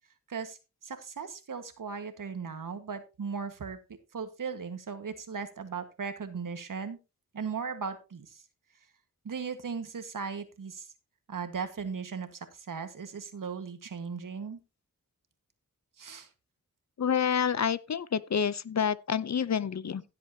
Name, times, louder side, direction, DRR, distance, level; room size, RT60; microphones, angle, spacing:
voice 1, 0.8-3.8 4.1-7.0 7.3-8.4 9.2-10.9 11.3-14.6 16.0-16.3, right 5 dB, 65° right, 1.7 m, -37 dB
voice 2, 17.0-20.0, left 7 dB, 50° left, 0.7 m, -28 dB
16.0 x 7.7 x 2.9 m
cardioid pair, 60°, 34 cm